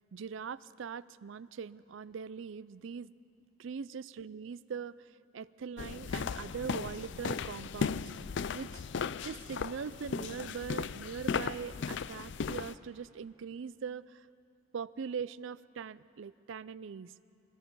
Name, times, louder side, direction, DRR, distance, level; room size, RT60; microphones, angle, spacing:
voice 1, 0.1-3.1 3.6-8.0 8.5-8.8 9.2-14.3 14.7-17.1, right 6 dB, 65° right, 18 dB, 0.4 m, -41 dB
sound 1, 5.8-12.7, left 6 dB, 60° left, 0.4 m, -36 dB
24.5 x 20.5 x 5.4 m, 2.5 s
head